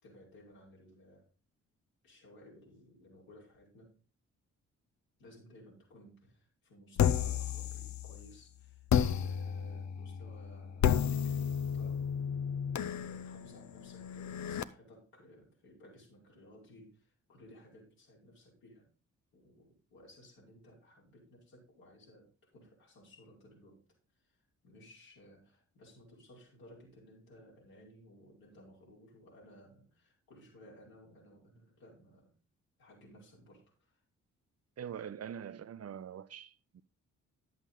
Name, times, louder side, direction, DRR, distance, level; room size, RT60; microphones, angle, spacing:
voice 1, 0.0-1.3 2.0-3.9 5.2-8.9 9.2-12.1 12.6-18.9 19.3-23.8 24.2-32.3 32.8-34.0, equal, 75° left, 5.2 m, -58 dB
sound 1, 7.0-8.3 8.9-14.6, left 8 dB, 50° left, 0.7 m, -32 dB
voice 2, 34.8-36.8, right 8 dB, 45° right, 0.8 m, -44 dB
11.0 x 8.0 x 3.9 m
hypercardioid pair, 40°, 36 cm